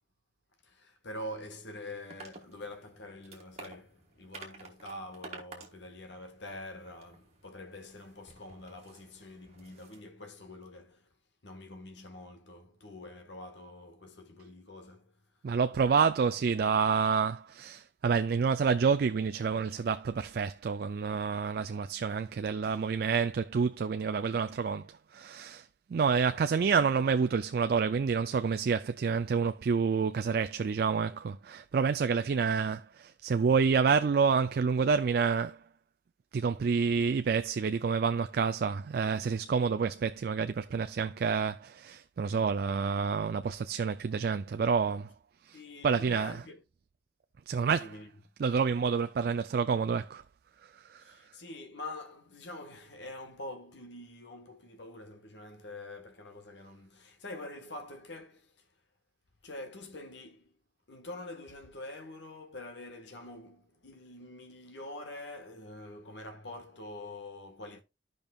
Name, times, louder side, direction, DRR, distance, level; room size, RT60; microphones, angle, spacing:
voice 1, 0.6-11.1 11.4-15.1 45.5-46.6 47.8-48.1 51.0-58.5 59.4-60.5 60.9-67.8, left 1 dB, 70° left, 1.4 m, -45 dB
sound 1, 2.1-10.0, right 3 dB, 35° right, 1.6 m, -52 dB
voice 2, 15.4-35.6 36.3-45.1 45.5-46.4 47.5-48.0 48.4-50.2 50.9-51.1, right 5 dB, 55° right, 0.3 m, -28 dB
14.0 x 5.3 x 2.3 m
head